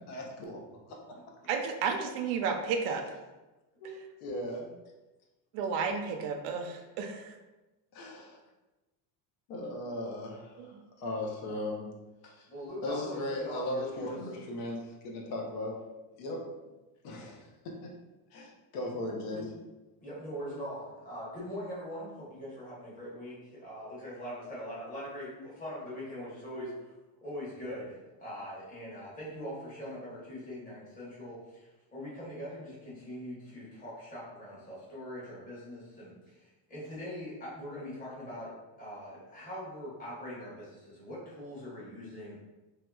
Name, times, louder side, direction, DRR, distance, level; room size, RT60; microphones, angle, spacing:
voice 1, 0.1-0.6 0.9-1.0 3.8-3.9 4.2-4.8 7.9-8.4 9.5-11.9 12.2-12.5 12.8-15.7 16.2-16.4 17.0-17.9 18.3-19.4, left 1 dB, 75° left, 0 dB, 0.9 m, -37 dB
voice 2, 1.5-3.0 3.8-4.0 5.5-7.3 10.6-10.8, right 5 dB, 80° right, 5 dB, 0.6 m, -32 dB
voice 3, 12.5-14.2 19.3-19.5 20.0-26.9 27.2-38.5 38.8-42.4, equal, 15° left, -8 dB, 1.0 m, -42 dB
3.1 x 2.8 x 2.3 m, 1.1 s
cardioid pair, 165°, 47 cm